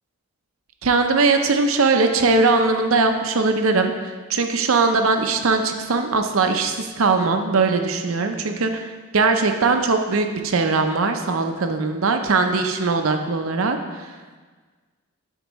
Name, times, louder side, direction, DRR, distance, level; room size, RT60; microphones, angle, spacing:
voice 1, 0.8-14.1, right 3 dB, 75° right, 5 dB, 0.6 m, -20 dB
11.5 x 4.5 x 3.1 m, 1.4 s
head